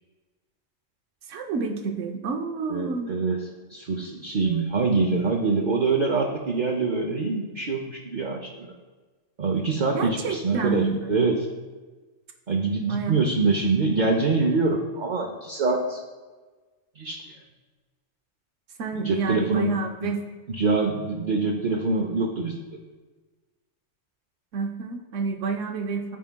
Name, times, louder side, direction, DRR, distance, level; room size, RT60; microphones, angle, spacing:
voice 1, 1.3-3.1 4.5-4.6 9.9-11.2 12.9-13.1 18.8-20.2 24.5-26.2, right 4 dB, 85° right, 4 dB, 1.1 m, -29 dB
voice 2, 2.7-3.4 3.7-8.7 9.4-11.4 12.5-16.0 17.0-17.3 18.9-19.8 20.0-20.1 20.5-22.6, right 4 dB, 50° right, 0 dB, 0.7 m, -24 dB
13.0 x 4.7 x 2.2 m, 1.3 s
omnidirectional pair, 1.3 m